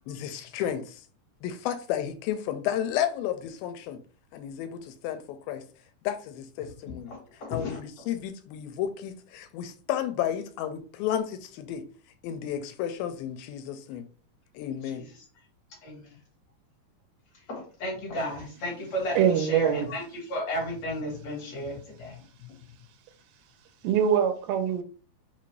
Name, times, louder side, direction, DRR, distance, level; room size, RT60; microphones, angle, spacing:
voice 1, 0.1-1.0 1.4-4.0 4.3-5.6 6.0-7.1 7.5-11.8 12.2-14.0 14.6-15.0, left 10 dB, 85° left, 2.4 m, -32 dB
voice 2, 7.1-7.8 14.9-15.1 15.8-16.1 17.5-20.0 20.3-22.5, left 1 dB, 55° left, 2.2 m, -34 dB
voice 3, 19.2-19.9 23.8-24.8, right 8 dB, 90° right, 2.5 m, -23 dB
5.8 x 2.5 x 3.2 m
omnidirectional pair, 4.3 m